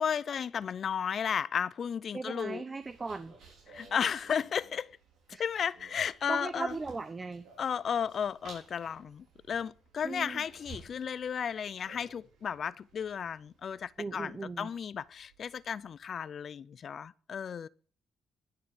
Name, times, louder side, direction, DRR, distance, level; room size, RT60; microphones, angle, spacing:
voice 1, 0.0-2.6 3.7-4.9 5.3-6.7 7.6-17.7, left 7 dB, 60° left, 0.5 m, -34 dB
voice 2, 2.1-3.3 5.3-5.4 6.3-7.5 10.0-10.4 14.0-14.7, right 3 dB, 35° right, 0.9 m, -37 dB
sound 1, 2.8-15.9, right 3 dB, 70° right, 5.1 m, -56 dB
11.0 x 6.6 x 8.2 m
hypercardioid pair, 50°, 0 cm